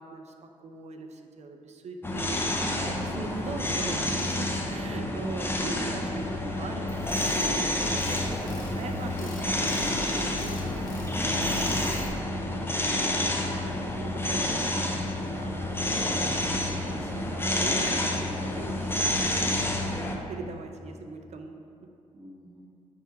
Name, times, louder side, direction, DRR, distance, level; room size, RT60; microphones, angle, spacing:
voice 1, 0.0-6.2 6.6-12.0 12.4-12.8 13.2-15.1 15.3-16.4 16.8-20.0 20.3-21.6, right 4 dB, 55° right, 5 dB, 0.7 m, -42 dB
sound 1, 2.0-20.2, left 1 dB, 15° left, 0.9 m, -29 dB
sound 2, 6.9-12.1, equal, 85° left, 1.3 m, -42 dB
voice 2, 22.1-22.6, equal, 25° right, -6 dB, 1.2 m, -45 dB
9.2 x 3.6 x 4.5 m, 2.6 s
supercardioid pair, 65°, 14 cm